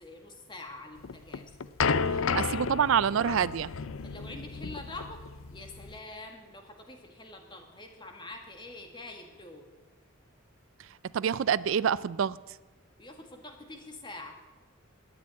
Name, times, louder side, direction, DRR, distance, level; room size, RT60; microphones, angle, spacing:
voice 1, 0.0-1.5 2.5-2.7 4.0-5.2 5.5-9.7 13.0-14.3, left 2 dB, 20° left, 4 dB, 1.8 m, -45 dB
sound 1, 1.0-6.0, left 5 dB, 75° left, 0.6 m, -32 dB
voice 2, 2.3-3.7 11.1-12.4, right 8 dB, 65° right, 19 dB, 0.3 m, -26 dB
12.0 x 10.0 x 9.4 m, 1.3 s
head